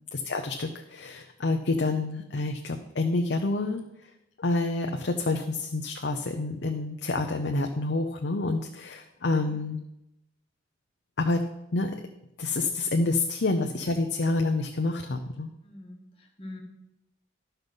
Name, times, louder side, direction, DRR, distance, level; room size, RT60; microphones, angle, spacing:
voice 1, 0.1-3.8 4.4-9.8 11.2-11.4 11.7-11.9 12.4-15.5, left 2 dB, 65° left, 4 dB, 0.6 m, -28 dB
voice 2, 15.6-16.6, left 1 dB, 30° left, 0 dB, 1.8 m, -45 dB
12.0 x 5.8 x 5.3 m, 0.88 s
head